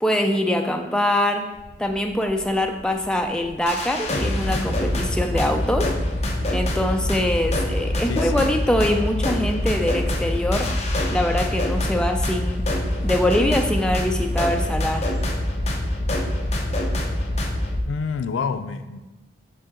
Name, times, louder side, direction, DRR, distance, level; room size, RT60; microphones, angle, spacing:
voice 1, 0.0-1.5 1.8-5.9 6.5-10.7 11.1-12.6 13.0-15.1, left 1 dB, 5° left, 3 dB, 0.3 m, -23 dB
sound 1, 1.5-15.3, equal, 75° right, 0.8 m, -45 dB
sound 2, 3.7-17.8, left 1 dB, 35° left, 0.7 m, -25 dB
voice 2, 8.1-8.6 17.9-19.0, left 5 dB, 90° left, 10 dB, 0.4 m, -28 dB
6.9 x 3.8 x 3.7 m, 1.1 s
head